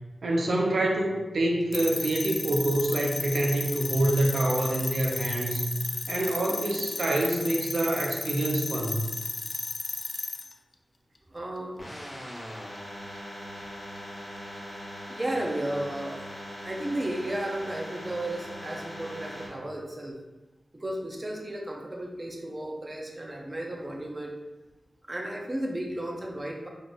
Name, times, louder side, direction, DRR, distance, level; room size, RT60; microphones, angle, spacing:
voice 1, 0.2-5.7 6.1-9.1, right 1 dB, 90° right, 0 dB, 0.5 m, -26 dB
sound 1, 1.7-10.5, left 3 dB, 55° left, 0.3 m, -34 dB
voice 2, 11.3-11.8 15.1-16.3 16.6-20.2 20.7-24.3 25.0-26.7, right 1 dB, 30° right, -1 dB, 0.6 m, -34 dB
sound 2, 11.8-19.5, equal, 35° left, 1.0 m, -40 dB
3.9 x 3.4 x 2.4 m, 1.1 s
wide cardioid pair, 105°, 0 cm